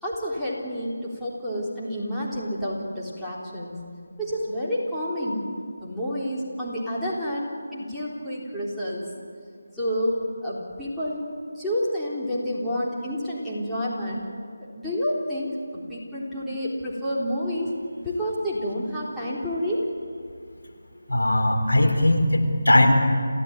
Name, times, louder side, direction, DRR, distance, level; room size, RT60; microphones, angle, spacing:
voice 1, 0.0-3.8 4.2-5.4 5.8-9.0 9.8-11.2 11.6-14.2 14.7-15.5 15.9-17.7 18.0-19.8, equal, ahead, -10 dB, 3.7 m, -29 dB
voice 2, 21.1-22.9, left 1 dB, 80° left, 4 dB, 3.7 m, -19 dB
28.0 x 16.0 x 9.2 m, 2.2 s
figure-of-eight pair, 160°, 0 cm